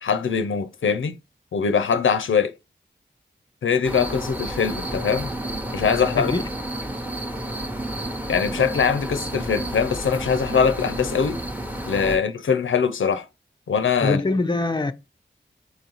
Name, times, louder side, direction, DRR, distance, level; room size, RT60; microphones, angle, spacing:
voice 1, 0.0-1.2 1.5-2.5 3.6-5.3 5.7-6.4 8.3-11.4 11.9-13.3 13.7-14.2, left 6 dB, 90° left, 0.5 m, -22 dB
sound 1, 3.8-12.2, right 1 dB, 10° right, 0.7 m, -31 dB
voice 2, 6.2-6.5 14.0-14.9, left 3 dB, 25° left, 0.4 m, -23 dB
4.0 x 3.9 x 2.9 m
wide cardioid pair, 75°, 20 cm